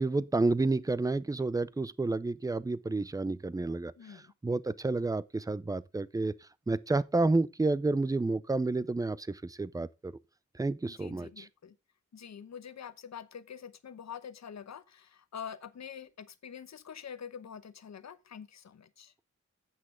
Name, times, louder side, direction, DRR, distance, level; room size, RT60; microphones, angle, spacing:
voice 1, 0.0-6.3 6.7-10.1 10.5-11.5, right 3 dB, 10° right, 0.4 m, -30 dB
voice 2, 4.0-4.3 10.8-11.8 12.1-19.1, left 7 dB, 65° left, 0.9 m, -46 dB
9.5 x 8.2 x 3.8 m
wide cardioid pair, 150°, 30 cm